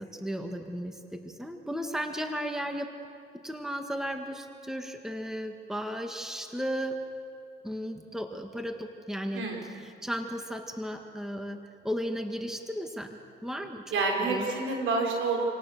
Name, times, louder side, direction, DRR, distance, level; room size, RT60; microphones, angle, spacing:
voice 1, 0.0-2.9 3.4-7.0 7.6-9.5 9.8-11.6 11.8-13.8 14.3-14.5, equal, ahead, 4 dB, 1.9 m, -35 dB
voice 2, 13.9-15.4, right 3 dB, 80° right, 1 dB, 5.2 m, -28 dB
27.5 x 18.0 x 6.8 m, 2.4 s
cardioid pair, 90°, 20 cm